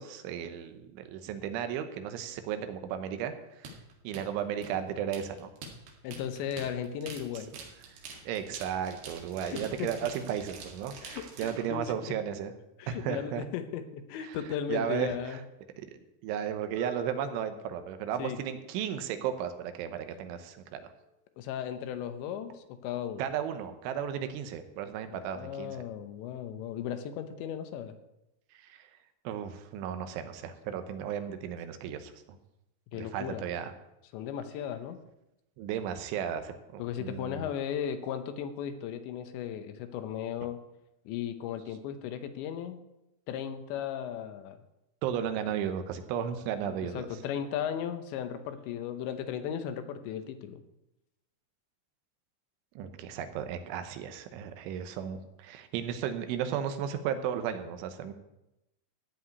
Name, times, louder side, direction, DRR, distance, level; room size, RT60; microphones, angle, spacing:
voice 1, 0.0-3.7 4.0-5.5 8.2-12.5 12.9-13.4 14.2-14.4 14.7-15.4 16.2-20.8 23.2-25.8 28.5-28.9 29.2-32.4 32.9-33.7 35.6-37.4 45.0-47.1 52.8-58.1, right 9 dB, 80° right, 9 dB, 3.3 m, -34 dB
sound 1, 3.6-11.6, right 4 dB, 65° right, 3.7 m, -46 dB
voice 2, 6.0-7.5 9.4-9.9 11.0-11.8 12.8-15.4 18.2-18.4 21.4-23.3 25.1-28.0 32.9-33.5 34.1-35.0 36.8-40.6 41.1-42.8 43.3-44.6 46.6-50.6, left 9 dB, 75° left, 9 dB, 3.0 m, -36 dB
Harp, 16.8-22.6 23.6-23.7, left 1 dB, 35° right, 2.5 m, -51 dB
14.5 x 5.0 x 9.4 m, 0.90 s
omnidirectional pair, 5.5 m